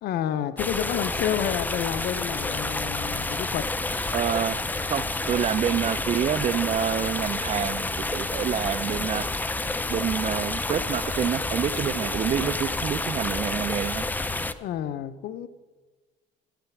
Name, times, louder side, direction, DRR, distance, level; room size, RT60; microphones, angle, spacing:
voice 1, 0.0-3.6 14.6-15.5, left 10 dB, 70° left, 12 dB, 0.6 m, -29 dB
sound 1, 0.6-14.5, left 2 dB, 10° left, 0.5 m, -29 dB
voice 2, 4.1-9.3 9.9-14.1, right 9 dB, 40° right, 17 dB, 0.4 m, -27 dB
14.0 x 9.1 x 5.9 m, 1.3 s
cardioid pair, 110°, 17 cm